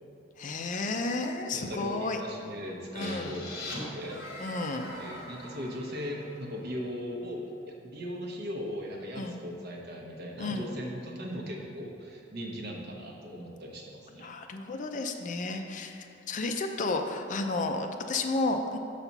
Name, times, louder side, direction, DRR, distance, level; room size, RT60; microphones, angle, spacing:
voice 1, 0.4-2.2 2.9-3.4 4.4-4.9 9.2-9.4 10.4-10.7 14.1-18.8, left 3 dB, 40° left, 5 dB, 0.4 m, -32 dB
voice 2, 1.5-4.6 4.9-7.4 7.8-14.3, equal, 55° right, -1 dB, 1.0 m, -38 dB
sound 1, 3.0-6.7, left 1 dB, 55° left, 1.5 m, -42 dB
6.7 x 4.1 x 5.9 m, 2.7 s
head